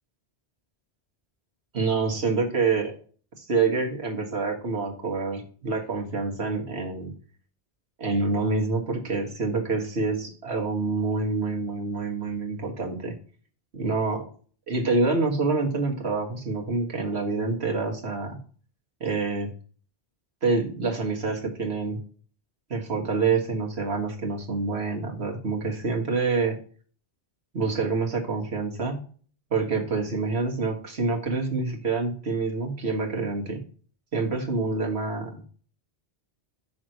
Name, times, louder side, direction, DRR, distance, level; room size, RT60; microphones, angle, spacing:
voice 1, 1.7-3.0 3.4-7.1 8.0-13.1 13.7-14.2 14.7-18.4 19.0-19.5 20.4-22.0 22.7-26.6 27.5-29.0 29.5-33.6 34.1-35.4, right 3 dB, 75° right, 2 dB, 1.9 m, -27 dB
6.3 x 4.6 x 6.4 m, 0.41 s
omnidirectional pair, 1.1 m